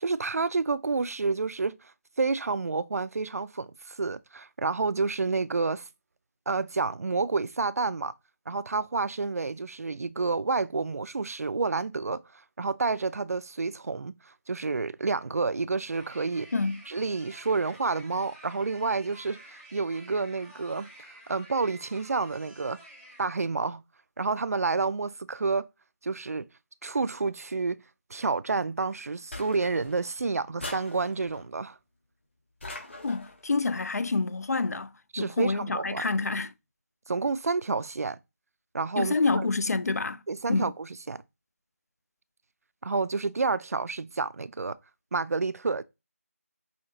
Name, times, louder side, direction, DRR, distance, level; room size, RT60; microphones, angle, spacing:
voice 1, 0.0-1.9 2.2-5.9 6.5-8.1 8.5-12.2 12.6-16.5 16.9-22.8 23.2-23.8 24.2-25.7 26.0-26.5 26.8-27.8 28.1-31.8 35.1-36.1 37.1-38.2 38.7-39.5 40.3-41.2 42.8-44.8 45.1-45.8, right 4 dB, 70° right, 0.3 m, -29 dB
sound 1, 15.9-23.2, right 1 dB, 5° left, 0.7 m, -51 dB
sound 2, 29.3-30.1 30.6-31.5 32.6-33.4, left 2 dB, 50° left, 1.4 m, -41 dB
voice 2, 33.0-34.9 35.2-36.5 39.0-40.2 40.5-40.7, left 3 dB, 80° left, 0.4 m, -27 dB
5.6 x 2.8 x 2.7 m
figure-of-eight pair, 175°, 8 cm